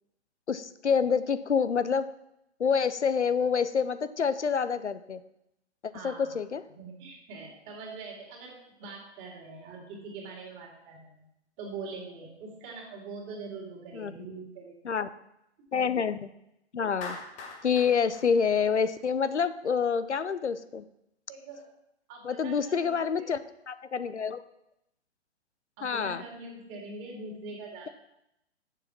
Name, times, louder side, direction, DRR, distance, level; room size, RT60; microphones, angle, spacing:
voice 1, 0.5-2.1 2.6-5.2 6.0-6.6 13.9-14.1 14.8-15.1 15.7-16.3 16.7-17.2 17.6-20.8 22.2-23.4 23.7-24.4 25.8-26.2, left 6 dB, 85° left, 14 dB, 0.6 m, -27 dB
voice 2, 5.9-6.3 6.7-11.2 11.6-14.8 21.3-21.7 22.1-23.3 25.8-27.9, right 3 dB, 30° right, -1 dB, 2.7 m, -43 dB
Clapping, 17.0-19.3, left 4 dB, 20° left, 1.2 m, -43 dB
7.0 x 6.9 x 5.8 m, 0.83 s
figure-of-eight pair, 115°, 34 cm